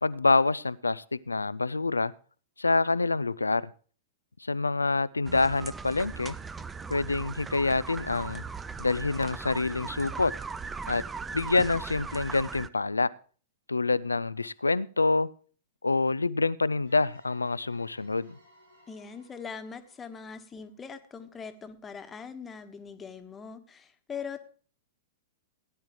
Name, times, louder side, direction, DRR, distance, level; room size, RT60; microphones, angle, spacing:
voice 1, 0.0-2.1 2.6-3.7 4.4-6.4 6.9-8.4 8.8-10.3 10.9-11.0 11.3-13.1 13.7-15.3 15.8-18.4, left 3 dB, 85° left, 19 dB, 0.4 m, -26 dB
sound 1, 5.2-12.7, right 5 dB, 15° right, 0.5 m, -38 dB
sound 2, 16.8-21.4, left 1 dB, 85° right, 4.4 m, -61 dB
voice 2, 18.9-24.4, left 6 dB, 15° left, 9 dB, 1.4 m, -41 dB
17.0 x 10.5 x 3.1 m, 0.40 s
figure-of-eight pair, 100°, 0 cm